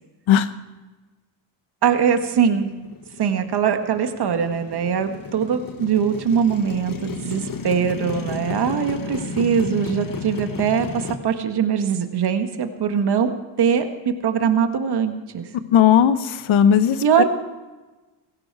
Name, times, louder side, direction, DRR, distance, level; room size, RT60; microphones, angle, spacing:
Motorcycle, 1.8-11.2, left 4 dB, 40° left, 1.7 m, -33 dB
voice 1, 1.8-2.7 3.2-15.5 17.0-17.2, right 7 dB, 50° right, 7 dB, 1.7 m, -22 dB
voice 2, 15.7-17.2, left 9 dB, 70° left, 13 dB, 1.1 m, -16 dB
16.5 x 15.5 x 4.8 m, 1.2 s
cardioid pair, 80°, 49 cm